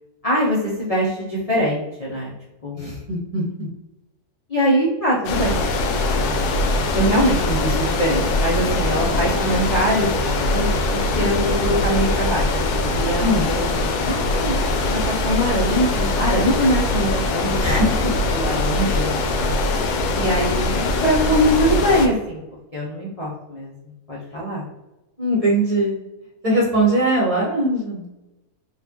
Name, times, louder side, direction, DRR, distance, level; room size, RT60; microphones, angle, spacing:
voice 1, 0.2-2.3 2.6-2.9 4.5-5.6 6.9-10.1 10.5-10.7 10.9-13.7 14.0-14.5 14.9-18.1 18.3-19.1 20.1-22.4 22.7-23.7 24.1-24.6, equal, 70° left, -6 dB, 0.3 m, -22 dB
voice 2, 2.8-3.4 13.2-13.5 17.5-18.1 25.2-26.0 26.4-28.1, right 1 dB, 30° right, -6 dB, 0.7 m, -20 dB
sound 1, 5.2-22.1, left 2 dB, 90° left, 1.1 m, -22 dB
3.9 x 2.3 x 2.9 m, 1.0 s
omnidirectional pair, 1.6 m